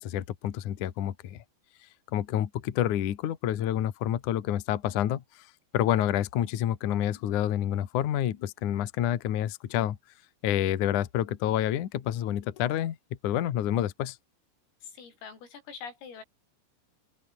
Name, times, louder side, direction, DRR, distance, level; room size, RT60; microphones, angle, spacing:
voice 1, 0.0-1.4 2.1-5.4 5.7-10.0 10.4-13.0 13.2-14.2, left 11 dB, 60° left, 2.1 m, -28 dB
voice 2, 14.8-16.2, left 6 dB, 90° left, 8.9 m, -44 dB
open air
omnidirectional pair, 5.8 m